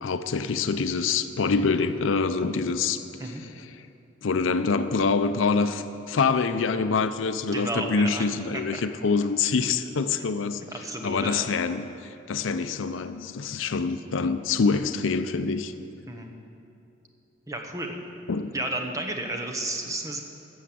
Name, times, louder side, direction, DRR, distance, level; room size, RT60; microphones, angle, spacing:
voice 1, 0.0-3.0 4.2-10.6 11.0-11.9 12.3-15.7 18.3-18.5, left 4 dB, 75° left, 11 dB, 0.5 m, -25 dB
voice 2, 7.5-8.3 8.5-8.8 10.7-11.5 16.1-16.3 17.5-17.9 18.5-20.2, right 1 dB, 15° right, 3 dB, 0.9 m, -32 dB
13.0 x 7.3 x 7.6 m, 2.7 s
head